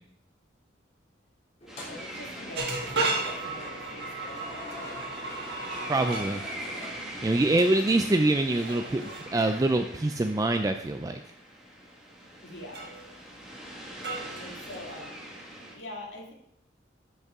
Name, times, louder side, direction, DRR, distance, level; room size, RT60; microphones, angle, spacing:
sound 1, 1.6-7.6, left 1 dB, 35° left, 3.2 m, -45 dB
sound 2, 1.7-15.7, right 1 dB, 5° right, 1.4 m, -43 dB
voice 1, 1.9-5.1 12.4-12.9 14.4-15.2 15.7-16.3, left 1 dB, 70° left, -1 dB, 2.1 m, -44 dB
sound 3, 2.6-6.3 8.5-9.3 12.7-13.1 14.0-15.1, right 3 dB, 60° right, 1.5 m, -34 dB
voice 2, 5.9-6.4 7.2-11.2, right 2 dB, 20° right, 6 dB, 0.3 m, -25 dB
12.0 x 5.4 x 3.6 m, 0.73 s
head